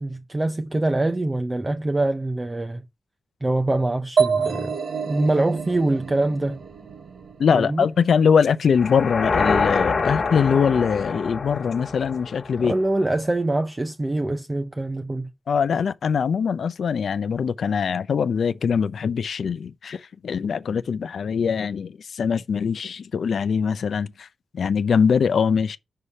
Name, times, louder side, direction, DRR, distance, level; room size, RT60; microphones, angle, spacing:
voice 1, 0.0-2.9 3.4-4.8 5.1-6.6 7.5-7.9 12.6-15.3, right 2 dB, 20° right, 0.5 m, -24 dB
sound 1, 4.2-7.8, right 5 dB, 60° right, 0.9 m, -27 dB
voice 2, 7.4-12.7 15.5-24.3 24.5-25.8, left 6 dB, 65° left, 0.5 m, -22 dB
sound 2, 8.8-12.9, left 4 dB, 50° left, 1.3 m, -25 dB
5.5 x 4.9 x 5.5 m
wide cardioid pair, 135°, 0 cm